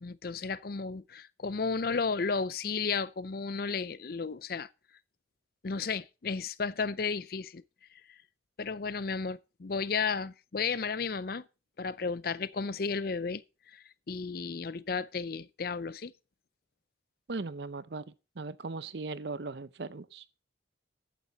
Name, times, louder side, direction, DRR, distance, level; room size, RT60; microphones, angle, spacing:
voice 1, 0.0-4.7 5.6-7.6 8.1-8.2 8.6-11.5 11.8-13.4 13.7-16.1, left 5 dB, 50° left, 0.5 m, -33 dB
voice 2, 17.3-18.0 18.4-20.2, right 3 dB, 65° right, 0.7 m, -38 dB
14.0 x 9.2 x 4.0 m
head